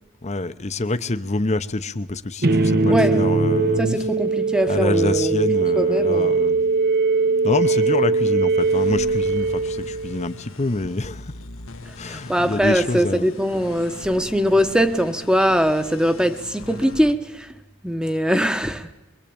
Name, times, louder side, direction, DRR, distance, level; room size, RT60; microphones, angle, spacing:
voice 1, 0.2-4.1 4.7-6.6 7.4-11.3 12.0-13.3, left 2 dB, 30° left, 0.9 m, -26 dB
sound 1, 2.4-10.3, right 3 dB, 45° right, 0.9 m, -20 dB
voice 2, 2.9-3.2 3.8-5.5 5.7-6.4 12.1-17.5 17.8-18.9, equal, 5° right, 1.1 m, -21 dB
sound 2, 8.6-17.1, left 2 dB, 65° left, 1.2 m, -40 dB
23.0 x 22.5 x 8.8 m
head